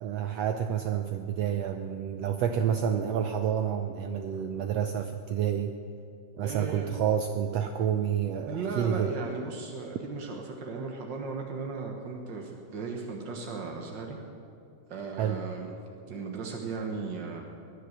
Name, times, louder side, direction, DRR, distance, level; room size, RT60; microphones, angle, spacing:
voice 1, 0.0-5.7 6.4-9.1 15.2-15.4, right 8 dB, 90° right, 6 dB, 1.4 m, -29 dB
voice 2, 6.4-6.9 8.5-14.2 14.9-15.8 16.1-17.4, right 4 dB, 60° right, 1 dB, 1.2 m, -36 dB
21.5 x 10.5 x 6.6 m, 2.7 s
omnidirectional pair, 3.8 m